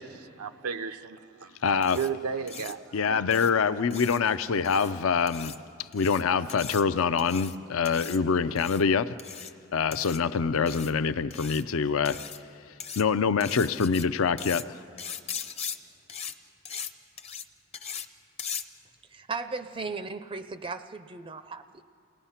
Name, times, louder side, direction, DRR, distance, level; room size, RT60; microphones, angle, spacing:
voice 1, 0.0-1.6 1.9-3.0, right 6 dB, 85° right, 0.6 m, -34 dB
voice 2, 1.6-2.0 2.9-5.5 5.8-9.1 9.7-12.2 13.0-14.8, left 5 dB, 70° left, 0.5 m, -25 dB
sound 1, 1.8-2.1 2.5-2.7 3.3-3.5 3.9-4.2 4.6-4.9 5.3-5.6 5.9-6.2 6.5-6.8 7.2-7.5 7.8-8.2 8.5-8.8 9.2-9.5 9.9-10.2 10.7-10.9 11.3-11.6 12.0-12.4 12.8-13.0 13.4-14.0 14.4-14.6 15.0-15.8 16.1-16.3 16.6-16.9 17.2-17.4 17.7-18.1 18.4-18.6, left 7 dB, 30° left, 0.6 m, -38 dB
voice 3, 19.1-21.8, right 4 dB, 25° right, 0.4 m, -36 dB
28.5 x 18.5 x 5.7 m
head